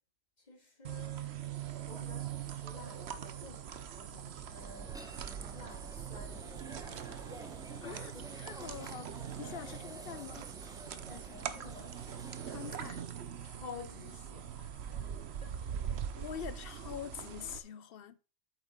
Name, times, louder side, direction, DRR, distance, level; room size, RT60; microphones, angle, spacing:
voice 1, 0.4-5.0 5.5-7.0 7.7-8.5 9.4-9.6 11.1-12.0 13.4-16.3, left 4 dB, 35° left, 2.0 m, -52 dB
sound 1, 0.8-17.6, right 9 dB, 60° right, 1.0 m, -42 dB
sound 2, 4.5-13.0, equal, 5° right, 0.8 m, -52 dB
voice 2, 7.8-9.1 9.4-10.5 12.5-13.0 16.2-18.2, left 9 dB, 65° left, 0.6 m, -45 dB
8.4 x 7.2 x 3.7 m
omnidirectional pair, 1.3 m